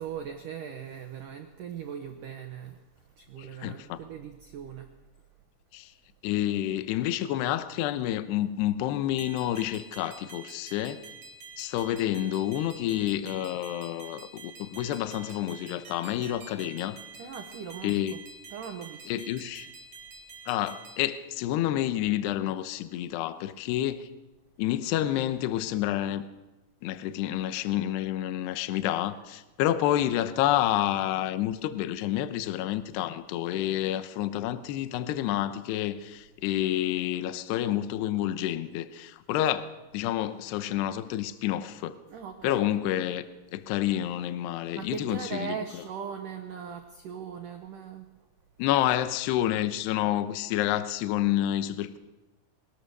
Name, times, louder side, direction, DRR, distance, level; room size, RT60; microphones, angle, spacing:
voice 1, 0.0-2.8 3.2-4.9 17.2-18.2 18.5-19.1 42.1-42.6 44.8-48.1, right 8 dB, 80° right, 1.8 m, -39 dB
voice 2, 3.4-4.0 5.7-5.9 6.2-11.0 11.6-17.0 17.8-18.2 19.1-19.7 20.5-24.1 24.6-26.3 26.8-39.6 39.9-42.0 42.4-43.2 43.5-45.8 48.6-52.0, left 12 dB, 75° left, 2.8 m, -29 dB
sound 1, 9.2-21.0, right 4 dB, 45° right, 3.6 m, -47 dB
24.0 x 18.5 x 6.8 m
omnidirectional pair, 5.6 m